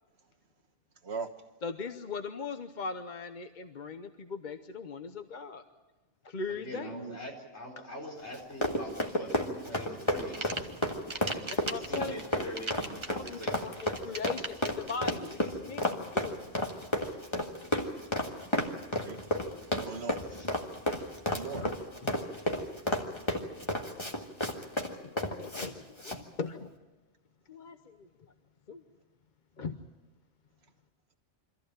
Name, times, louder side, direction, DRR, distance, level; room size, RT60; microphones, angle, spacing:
voice 1, 1.0-1.3 6.7-7.2 12.0-12.1 19.0-19.2 19.7-20.2 21.3-21.6, right 5 dB, 65° right, 6 dB, 1.5 m, -39 dB
voice 2, 1.6-5.6 6.2-7.0 11.7-12.1 13.1-16.5 21.5-22.6 24.5-24.7 25.0-26.7 27.5-28.3 28.7-28.8 29.6-29.8, left 4 dB, 45° left, 8 dB, 0.9 m, -40 dB
voice 3, 6.5-10.7 11.1-11.5 11.9-13.6 20.3-20.5, left 1 dB, 70° left, -1 dB, 4.6 m, -43 dB
Run, 8.3-25.7 26.0-26.2, left 1 dB, 25° left, 2.0 m, -32 dB
sound 1, 10.0-15.1, right 3 dB, 25° right, 1.1 m, -39 dB
24.5 x 14.5 x 8.9 m, 1.2 s
omnidirectional pair, 1.2 m